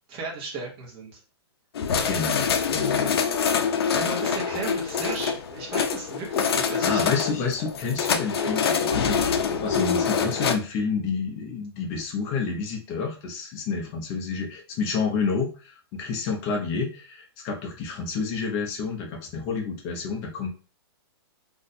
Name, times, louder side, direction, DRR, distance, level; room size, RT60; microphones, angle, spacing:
voice 1, 0.1-1.2 2.9-3.1 3.9-7.1, right 3 dB, 25° right, -4 dB, 1.0 m, -35 dB
sound 1, 1.7-10.5, left 6 dB, 65° left, 0.5 m, -25 dB
voice 2, 2.0-3.1 6.8-20.5, left 5 dB, 20° left, 1 dB, 0.6 m, -29 dB
2.6 x 2.3 x 4.0 m, 0.36 s
hypercardioid pair, 175°, 14 cm